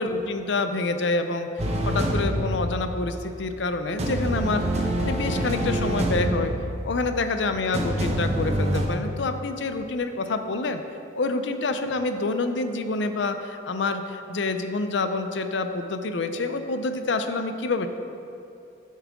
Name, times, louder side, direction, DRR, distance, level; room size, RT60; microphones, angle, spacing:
voice 1, 0.0-1.5 1.9-6.5 6.8-10.8 11.1-17.9, left 3 dB, 70° left, 8 dB, 0.5 m, -27 dB
sound 1, 1.6-3.6 4.0-8.9, right 1 dB, 35° right, 0.8 m, -27 dB
9.4 x 7.3 x 3.6 m, 2.7 s
head